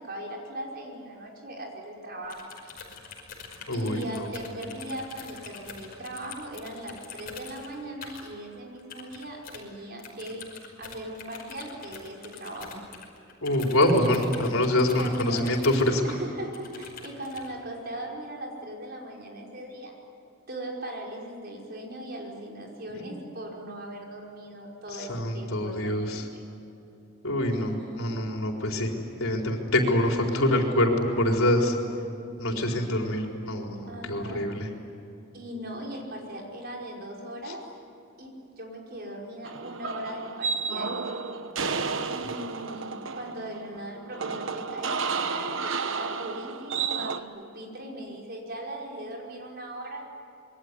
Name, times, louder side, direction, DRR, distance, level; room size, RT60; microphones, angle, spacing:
voice 1, 0.0-2.5 3.7-10.4 10.8-12.8 14.7-15.5 16.0-19.9 20.5-26.4 27.5-28.2 32.5-32.9 33.9-34.5 35.3-37.6 38.2-41.0 42.1-45.0 45.3-50.0, right 1 dB, 50° right, -1 dB, 5.5 m, -39 dB
sound 1, 2.2-8.3 8.8-9.6 10.0-16.2 16.5-17.5, left 6 dB, 45° left, 5.5 m, -44 dB
voice 2, 3.7-4.3 13.4-16.0 23.0-23.1 25.0-26.2 27.2-28.9 29.2-30.9 31.2-31.7 32.4-34.7, left 1 dB, 85° left, 1 dB, 4.3 m, -25 dB
sound 2, 39.4-47.2, right 5 dB, 65° right, 1.2 m, -32 dB
27.0 x 22.5 x 9.7 m, 2.7 s
head